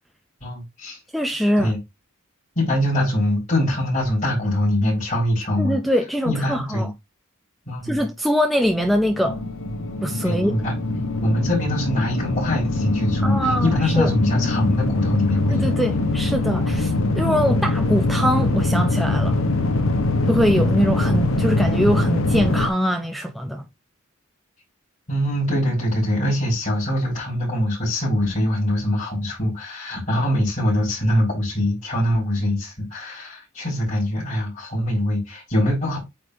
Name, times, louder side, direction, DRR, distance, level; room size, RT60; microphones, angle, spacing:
voice 1, 0.4-1.0 1.6-1.8 2.6-5.8 6.2-6.9 7.7-8.1 10.2-10.7 11.2-15.7 16.6-16.8 17.5-17.6 25.1-36.0, left 1 dB, 35° left, 3.9 m, -23 dB
voice 2, 1.1-1.7 5.6-6.9 7.8-9.4 10.0-10.6 13.2-14.1 15.5-19.4 20.2-23.6, equal, ahead, 0.3 m, -23 dB
sound 1, 8.7-22.7, left 2 dB, 80° left, 0.9 m, -23 dB
8.5 x 3.5 x 3.2 m
head